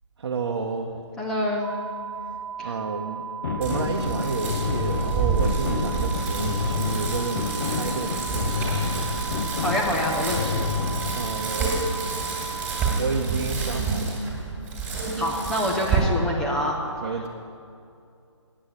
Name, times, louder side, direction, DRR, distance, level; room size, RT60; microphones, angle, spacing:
voice 1, 0.2-0.9 2.6-3.3 3.6-9.0 11.1-11.9 12.9-14.2 17.0-17.3, right 4 dB, 50° right, 1 dB, 0.8 m, -30 dB
voice 2, 1.2-1.7 2.6-2.8 9.6-10.6 15.2-16.8 17.0-17.1, left 1 dB, 5° left, -2 dB, 0.4 m, -26 dB
sound 1, 1.6-13.0, right 7 dB, 85° right, 0.5 m, -36 dB
sound 2, 3.4-11.3, left 4 dB, 40° left, 0.7 m, -29 dB
Bicycle, 3.6-15.9, right 4 dB, 10° right, 1.9 m, -29 dB
7.9 x 7.9 x 8.6 m, 2.5 s
figure-of-eight pair, 155°, 16 cm